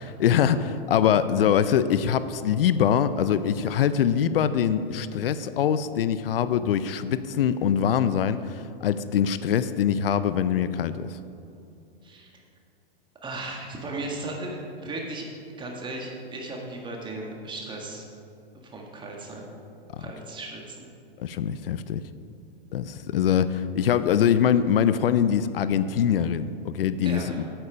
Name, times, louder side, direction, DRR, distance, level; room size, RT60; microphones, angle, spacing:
voice 1, 0.2-11.2 20.0-20.1 21.2-22.0 22.7-27.4, left 8 dB, 75° left, 13 dB, 0.5 m, -23 dB
voice 2, 13.2-15.3 15.5-18.1 18.6-19.4 20.0-20.8 27.0-27.4, right 2 dB, 15° right, 0 dB, 1.6 m, -36 dB
8.8 x 8.6 x 5.0 m, 2.7 s
hypercardioid pair, 120°, 29 cm